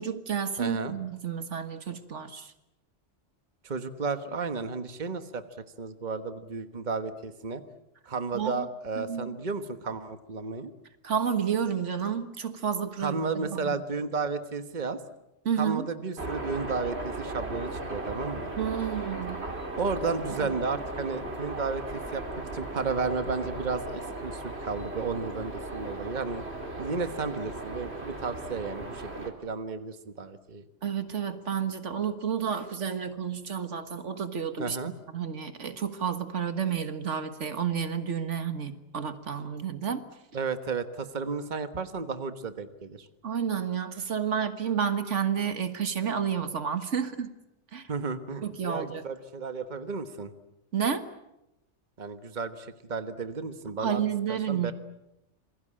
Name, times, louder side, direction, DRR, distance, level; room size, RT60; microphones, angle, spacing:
voice 1, 0.0-2.5 8.3-8.7 9.0-9.3 11.0-13.8 15.5-15.9 18.6-19.5 20.4-20.5 30.8-34.8 35.1-40.0 43.2-47.3 47.7-47.9 48.4-49.0 50.7-51.0 53.8-54.7, right 7 dB, 75° right, 10 dB, 1.8 m, -30 dB
voice 2, 0.6-0.9 3.6-5.4 5.8-7.6 8.1-10.7 13.0-15.0 15.6-18.5 19.8-22.2 22.5-26.4 26.8-30.6 34.6-34.9 40.3-43.1 47.9-50.3 52.0-54.0 54.3-54.7, right 4 dB, 40° right, 9 dB, 1.4 m, -33 dB
sound 1, 16.2-29.3, right 2 dB, 60° right, 3.7 m, -37 dB
27.5 x 21.5 x 8.8 m, 0.92 s
omnidirectional pair, 1.2 m